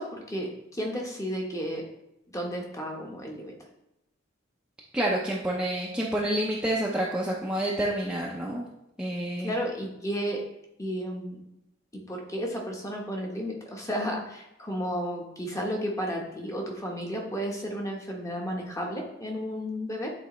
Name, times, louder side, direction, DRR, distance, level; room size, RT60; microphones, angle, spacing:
voice 1, 0.0-1.8 2.3-3.5 7.8-7.9 9.4-10.4 10.8-11.4 11.9-20.1, equal, 15° left, 0 dB, 1.0 m, -33 dB
voice 2, 4.9-8.7 9.0-9.5, right 1 dB, 5° right, -4 dB, 0.6 m, -28 dB
8.3 x 4.1 x 3.0 m, 0.87 s
head